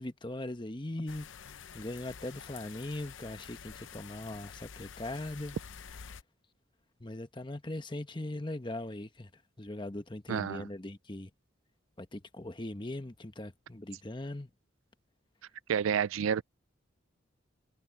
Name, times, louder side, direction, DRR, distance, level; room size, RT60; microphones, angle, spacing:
voice 1, 0.0-5.6 7.0-9.3 9.6-11.3 12.0-14.5, left 1 dB, 25° left, 1.0 m, -40 dB
sound 1, 1.1-6.2, left 7 dB, 70° left, 0.6 m, -48 dB
voice 2, 10.3-10.7 15.7-16.4, right 7 dB, 80° right, 0.4 m, -29 dB
head